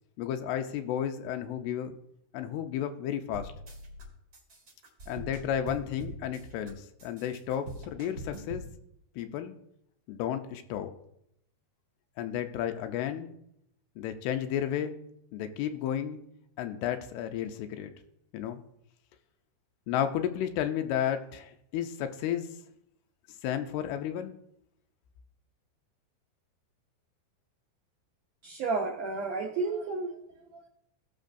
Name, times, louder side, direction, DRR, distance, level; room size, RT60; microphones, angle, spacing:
voice 1, 0.2-2.0 2.3-3.5 5.1-8.6 9.2-9.6 10.1-10.9 12.2-13.3 14.0-14.9 15.3-16.2 16.6-17.9 18.3-18.6 19.9-22.5 23.4-24.3, left 10 dB, 80° left, 7 dB, 2.4 m, -32 dB
sound 1, 3.3-4.0 4.3-6.7 7.0-8.7, right 1 dB, 40° right, 1.4 m, -43 dB
voice 2, 28.4-30.7, right 3 dB, 90° right, -1 dB, 1.8 m, -32 dB
18.5 x 6.4 x 2.6 m, 0.77 s
omnidirectional pair, 5.0 m